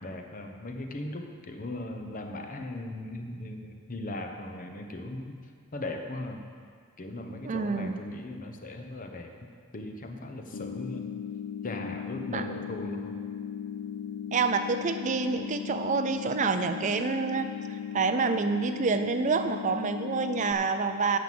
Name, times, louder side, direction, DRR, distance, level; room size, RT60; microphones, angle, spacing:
voice 1, 0.0-5.4 5.7-6.4 7.0-11.1 11.6-13.2, left 1 dB, 40° left, 4 dB, 0.8 m, -38 dB
voice 2, 7.4-8.0 12.3-12.5 14.3-21.2, right 4 dB, 35° right, 9 dB, 0.4 m, -28 dB
sound 1, 10.5-20.5, left 8 dB, 70° left, 0.5 m, -37 dB
9.4 x 5.9 x 7.7 m, 2.2 s
head